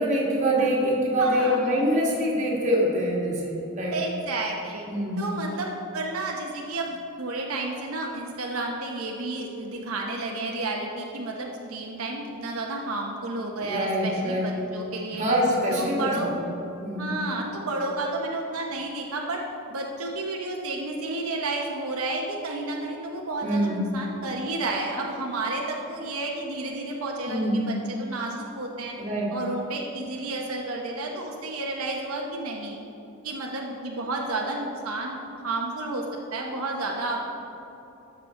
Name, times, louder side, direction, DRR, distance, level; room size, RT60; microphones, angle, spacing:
voice 1, 0.0-4.0 4.9-5.3 13.6-14.6 15.1-17.1 23.4-23.9 27.3-27.7 29.0-29.4, equal, 35° right, -4 dB, 1.9 m, -25 dB
voice 2, 1.2-1.7 3.9-4.9 5.2-15.2 15.7-16.3 17.0-19.4 19.7-28.9 29.3-32.8 33.2-36.0 36.3-37.3, right 2 dB, 80° right, -1 dB, 0.9 m, -31 dB
13.0 x 6.6 x 3.7 m, 2.9 s
head